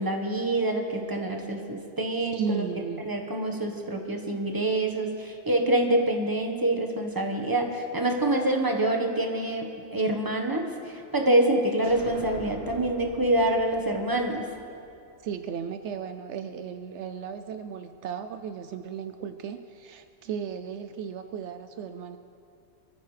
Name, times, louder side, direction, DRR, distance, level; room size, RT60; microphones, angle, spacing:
voice 1, 0.0-2.7 3.0-14.5, right 1 dB, 20° right, 2 dB, 1.3 m, -26 dB
voice 2, 2.3-3.0 15.2-22.2, right 7 dB, 75° right, 9 dB, 0.8 m, -35 dB
sound 1, 11.8-15.5, right 1 dB, 55° right, 2.0 m, -45 dB
23.5 x 14.0 x 3.3 m, 2.6 s
omnidirectional pair, 1.2 m